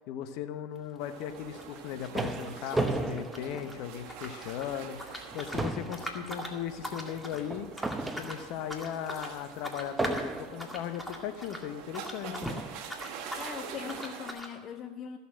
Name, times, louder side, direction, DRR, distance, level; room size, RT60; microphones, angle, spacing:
voice 1, 0.1-7.7 8.1-12.6, left 9 dB, 60° left, 9 dB, 1.0 m, -37 dB
sound 1, 0.7-3.8 4.0-12.6 12.8-13.5 13.9-14.5, left 1 dB, 5° left, 2.0 m, -42 dB
sound 2, 1.0-14.3, right 7 dB, 60° right, 1.6 m, -46 dB
sound 3, 1.6-4.3 4.7-4.9 5.2-8.7 10.0-10.7 11.6-11.7 12.4-12.9, right 2 dB, 10° right, 0.9 m, -35 dB
voice 2, 12.2-12.6 13.1-15.2, left 7 dB, 40° left, 9 dB, 0.6 m, -41 dB
15.0 x 6.9 x 6.3 m, 1.5 s
hypercardioid pair, 85°, 0 cm